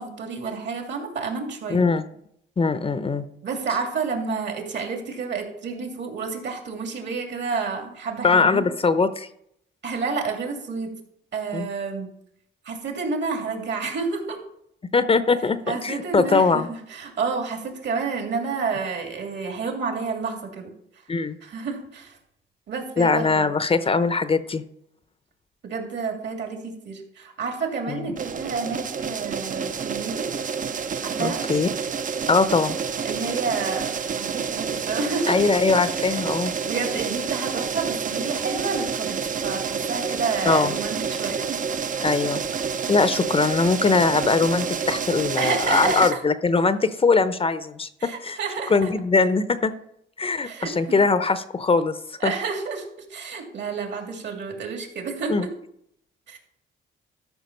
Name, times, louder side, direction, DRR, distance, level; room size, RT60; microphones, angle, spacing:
voice 1, 0.0-1.8 3.4-8.6 9.8-10.9 11.3-12.1 12.6-14.4 15.7-20.7 21.4-22.2 22.7-23.5 25.6-30.3 31.0-31.4 33.0-35.4 35.7-36.2 36.6-41.6 45.4-46.2 48.0-48.9 50.4-51.0 52.2-52.8 53.1-55.5 56.3-56.4, right 4 dB, 60° right, 3 dB, 2.8 m, -30 dB
voice 2, 1.7-2.0 2.6-3.2 8.2-9.3 11.5-11.7 14.9-16.7 21.1-21.3 23.0-24.6 27.9-28.0 31.2-31.7 32.3-32.8 35.3-36.5 40.5-40.7 42.0-42.4 42.9-48.4 48.7-49.7 50.2-52.0 52.2-52.3 55.3-55.5, left 4 dB, 30° left, 12 dB, 0.7 m, -21 dB
sound 1, 28.2-46.1, right 6 dB, 40° right, 0.6 m, -29 dB
12.5 x 5.7 x 5.4 m, 0.73 s
cardioid pair, 90°, 20 cm